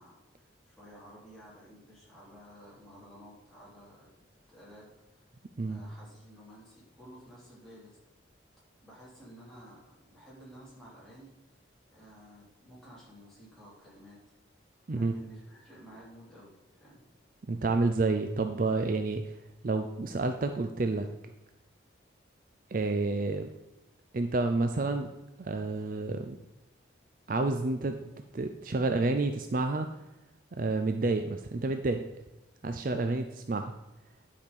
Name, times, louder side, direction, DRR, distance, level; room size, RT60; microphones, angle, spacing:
voice 1, 0.0-4.1 4.5-5.3 5.6-8.0 8.8-11.3 11.9-14.2 14.9-17.0 32.8-33.2, equal, ahead, -8 dB, 3.1 m, -53 dB
voice 2, 17.5-19.3 19.6-21.1 22.7-23.5 24.1-25.1 25.4-26.4 27.3-27.9 28.3-29.9 30.6-32.0 32.6-33.7, right 3 dB, 45° right, 7 dB, 0.5 m, -29 dB
10.5 x 5.0 x 5.3 m, 0.97 s
head